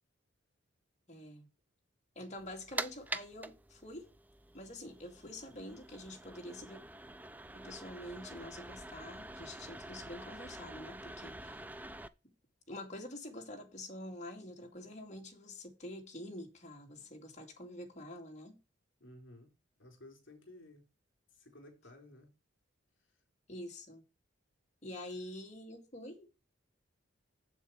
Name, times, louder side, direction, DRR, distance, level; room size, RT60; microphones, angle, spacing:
voice 1, 1.1-1.5 2.2-4.1 4.5-6.8 7.5-11.7 12.7-18.6 23.5-24.0 24.8-26.3, left 1 dB, 35° left, 2.4 m, -47 dB
sound 1, 2.4-12.1, right 2 dB, 10° right, 0.4 m, -46 dB
voice 2, 19.0-19.5 19.8-20.8 21.3-22.3, left 1 dB, 65° left, 4.1 m, -55 dB
7.9 x 7.3 x 4.8 m
head